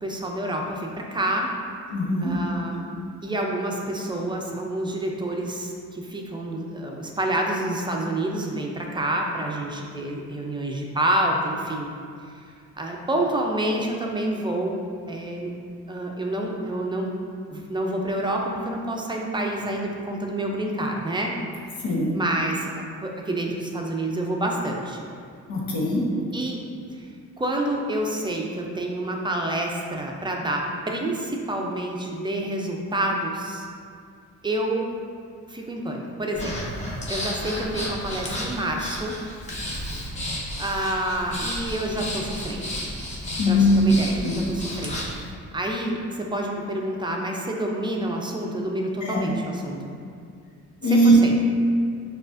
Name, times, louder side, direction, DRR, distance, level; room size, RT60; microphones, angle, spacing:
voice 1, 0.0-1.5 2.2-2.8 3.2-11.9 12.8-14.8 15.1-15.5 15.9-17.1 17.5-21.4 22.1-25.0 26.3-26.6 26.9-27.1 27.4-33.7 34.4-34.9 35.5-36.6 37.1-39.1 40.6-42.7 43.5-45.0 45.5-49.9 50.8-51.3, right 1 dB, 15° right, 0 dB, 0.5 m, -28 dB
voice 2, 1.9-2.4 2.8-3.0 21.8-22.2 25.5-26.1 43.4-43.8 44.2-44.4 49.0-49.3 50.8-51.2, equal, 75° left, -3 dB, 0.9 m, -20 dB
Breathing, 36.3-45.2, left 1 dB, 25° left, 0.8 m, -32 dB
5.9 x 2.4 x 2.5 m, 2.2 s
cardioid pair, 90°, 30 cm